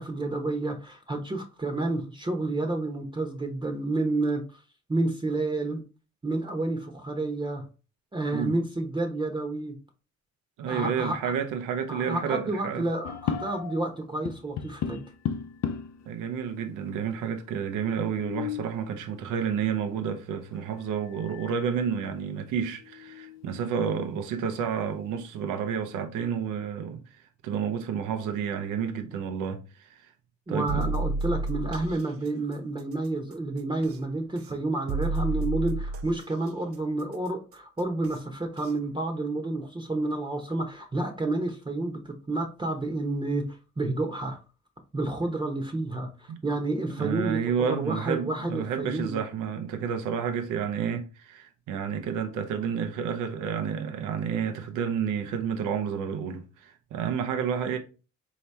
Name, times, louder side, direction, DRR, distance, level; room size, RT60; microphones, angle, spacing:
voice 1, 0.0-4.6 4.9-5.8 6.2-7.6 8.1-9.7 10.6-11.4 11.9-15.0 30.5-44.4 44.9-49.2, right 2 dB, 15° right, 0.8 m, -30 dB
voice 2, 10.6-12.9 16.1-30.1 30.5-30.9 46.3-46.4 46.9-57.8, right 7 dB, 90° right, 0.7 m, -30 dB
sound 1, 13.0-13.9 14.2-16.0 16.8-16.9 17.1-17.2 17.9-18.8 20.5-20.6 21.1-21.6 22.0-22.1 22.7-23.6, left 8 dB, 60° left, 0.5 m, -35 dB
sound 2, 30.7-32.0 33.8-33.9 34.9-36.2 38.0-38.1 38.6-38.7, right 3 dB, 50° right, 0.5 m, -30 dB
4.3 x 2.8 x 3.3 m
cardioid pair, 90°, 30 cm